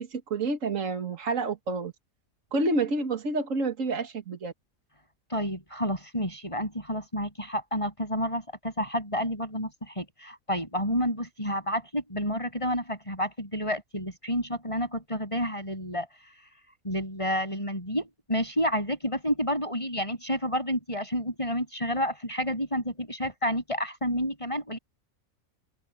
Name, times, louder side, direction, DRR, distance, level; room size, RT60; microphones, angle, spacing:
voice 1, 0.0-1.9 2.5-4.5, right 3 dB, 70° right, 2.2 m, -29 dB
voice 2, 5.3-16.1 16.8-24.8, equal, 20° left, 7.6 m, -30 dB
omnidirectional pair, 1.4 m